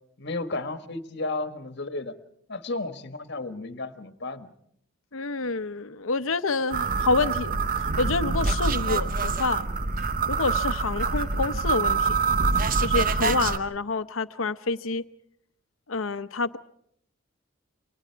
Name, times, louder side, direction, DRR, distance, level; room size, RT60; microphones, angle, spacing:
voice 1, 0.2-2.2 2.5-4.5, left 2 dB, 55° left, 10 dB, 1.5 m, -33 dB
voice 2, 5.1-9.7 10.3-12.2 12.8-15.0 15.9-16.6, left 3 dB, 75° left, 13 dB, 0.9 m, -28 dB
sound 1, 6.7-13.6, right 4 dB, 40° right, 0.9 m, -25 dB
29.5 x 25.0 x 4.6 m, 0.68 s
head